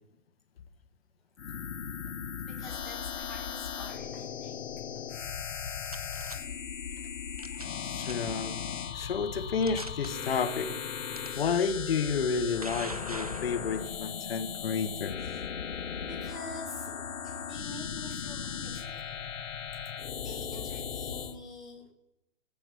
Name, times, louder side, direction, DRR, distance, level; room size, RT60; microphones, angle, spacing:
sound 1, 1.4-21.4, left 7 dB, 65° left, 1.2 m, -37 dB
voice 1, 2.4-4.6 15.7-16.9 17.2-19.2 20.2-21.8, left 2 dB, ahead, -7 dB, 1.0 m, -46 dB
sound 2, 5.5-6.4 7.4-7.8 8.0-8.4 9.0-9.1 9.6-10.1 11.1-11.3 12.2-14.0, right 2 dB, 30° right, 0.4 m, -42 dB
voice 2, 7.8-8.6 8.9-10.7 11.3-15.3, left 5 dB, 45° left, 10 dB, 1.1 m, -31 dB
13.0 x 7.7 x 6.8 m, 0.93 s
hypercardioid pair, 165°, 40 cm